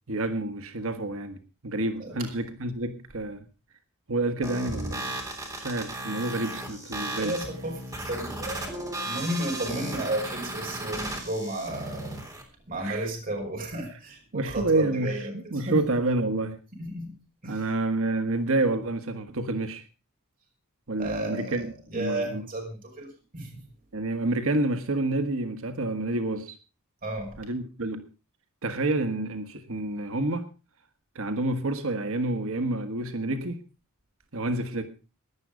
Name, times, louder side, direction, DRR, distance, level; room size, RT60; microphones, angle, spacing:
voice 1, 0.1-3.5 4.1-5.3 5.6-7.3 12.8-13.1 14.3-16.6 17.4-19.8 20.9-22.4 23.9-26.6 27.4-28.1 28.6-30.5 31.1-33.6 34.3-34.9, right 2 dB, 65° right, 1.4 m, -29 dB
sound 1, 4.4-12.4, right 1 dB, 15° right, 3.7 m, -35 dB
voice 2, 7.2-12.2 12.7-15.3 15.7-15.9 16.8-17.1 17.4-17.7 21.0-23.6 27.0-27.4, right 1 dB, 40° right, 5.6 m, -33 dB
17.0 x 11.0 x 5.0 m
head